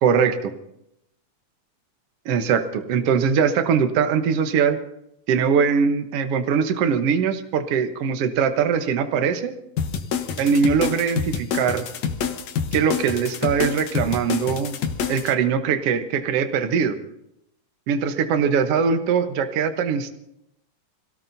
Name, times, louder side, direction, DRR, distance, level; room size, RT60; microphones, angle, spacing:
voice 1, 0.0-0.5 2.3-4.8 5.3-9.5 10.4-11.8 12.7-14.8 15.1-17.0 17.9-20.1, right 6 dB, 60° right, 8 dB, 1.9 m, -21 dB
sound 1, 9.8-15.3, left 7 dB, 70° left, 2.3 m, -27 dB
26.5 x 17.5 x 2.7 m, 0.79 s
omnidirectional pair, 3.5 m